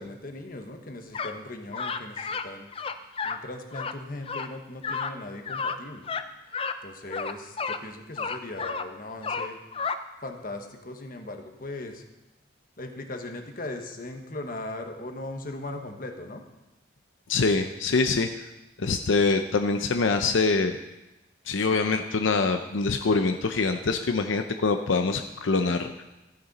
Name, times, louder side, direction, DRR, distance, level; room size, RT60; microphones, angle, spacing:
voice 1, 0.0-2.7 3.2-6.1 6.8-9.6 10.2-12.0 12.8-16.4, left 2 dB, 45° left, 5 dB, 1.2 m, -38 dB
sound 1, 1.1-1.4 1.7-2.5 2.7-3.4 3.7-3.9 4.3-4.5 4.8-5.1 5.4-5.8 6.0-6.2 6.5-6.8 7.1-7.8 8.2-8.9 9.2-10.0, left 5 dB, 30° left, 0.5 m, -31 dB
voice 2, 17.3-18.5 18.8-20.7 21.5-26.0, left 4 dB, 80° left, 6 dB, 0.6 m, -24 dB
14.5 x 10.5 x 4.1 m, 0.99 s
head